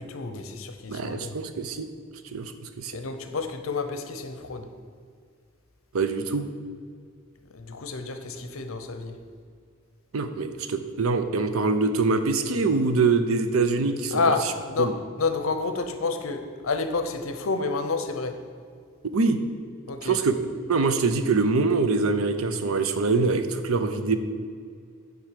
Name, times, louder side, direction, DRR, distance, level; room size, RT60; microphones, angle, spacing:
voice 1, 0.0-1.4 2.9-4.7 7.5-9.2 14.1-18.5 19.9-20.2, left 4 dB, 75° left, 7 dB, 0.7 m, -29 dB
voice 2, 0.9-1.9 2.3-2.5 2.8-2.9 5.9-6.5 10.1-14.2 14.8-14.9 19.1-19.4 20.0-20.3 20.7-24.2, right 4 dB, 80° right, 9 dB, 0.6 m, -24 dB
9.1 x 3.6 x 6.6 m, 2.1 s
head